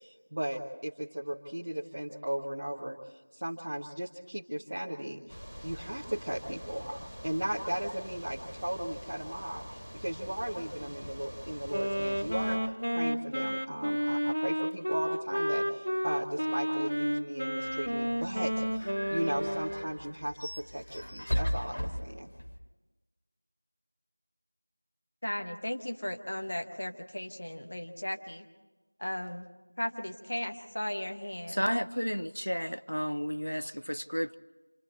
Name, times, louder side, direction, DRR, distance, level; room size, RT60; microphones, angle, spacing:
voice 1, 0.0-5.4 5.6-22.3, right 1 dB, 25° right, -5 dB, 0.8 m, -36 dB
sound 1, 5.3-12.6, equal, ahead, 0.9 m, -45 dB
Wind instrument woodwind instrument, 11.7-19.9, equal, 85° right, 1.3 m, -31 dB
sound 2, 17.6-22.6, equal, 50° left, 1.6 m, -37 dB
voice 2, 25.2-28.5 29.0-29.5 29.8-31.6, left 1 dB, 25° left, 5 dB, 0.8 m, -36 dB
voice 3, 31.5-34.3, equal, 90° left, 11 dB, 0.7 m, -32 dB
30.0 x 27.0 x 3.2 m, 1.2 s
figure-of-eight pair, 180°, 0 cm